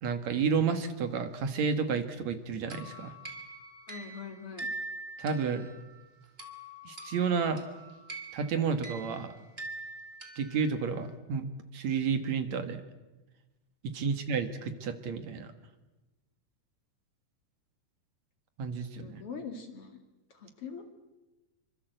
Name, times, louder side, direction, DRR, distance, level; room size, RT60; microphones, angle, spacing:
voice 1, 0.0-3.1 5.2-5.7 6.9-7.6 8.3-9.3 10.4-11.5 11.7-12.8 13.8-15.5 18.6-19.2, right 5 dB, 65° right, 9 dB, 2.7 m, -31 dB
sound 1, 2.7-11.0, right 2 dB, 20° right, 2.8 m, -44 dB
voice 2, 3.9-4.7 14.0-14.1 19.0-20.0 20.3-20.8, left 5 dB, 50° left, 6 dB, 3.0 m, -43 dB
27.0 x 25.0 x 7.9 m, 1.1 s
omnidirectional pair, 3.6 m